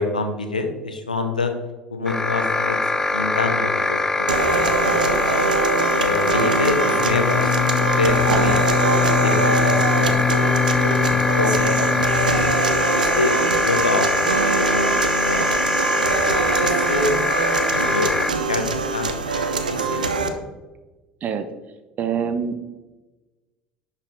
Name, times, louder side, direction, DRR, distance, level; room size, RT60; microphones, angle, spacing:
voice 1, 0.0-1.5 1.9-2.8 3.1-5.5 6.0-8.9 9.2-12.3 12.9-15.4 16.0-16.3 16.6-20.3, left 3 dB, 85° left, 6 dB, 0.8 m, -27 dB
sound 1, 2.1-18.3, left 2 dB, 15° left, 0.4 m, -23 dB
sound 2, 4.3-20.3, right 4 dB, 85° right, 0.6 m, -23 dB
Bowed string instrument, 6.9-12.9, left 9 dB, 40° left, 1.6 m, -24 dB
voice 2, 22.0-22.6, right 6 dB, 40° right, 9 dB, 0.7 m, -25 dB
11.0 x 4.2 x 3.5 m, 1.1 s
figure-of-eight pair, 65°, 4 cm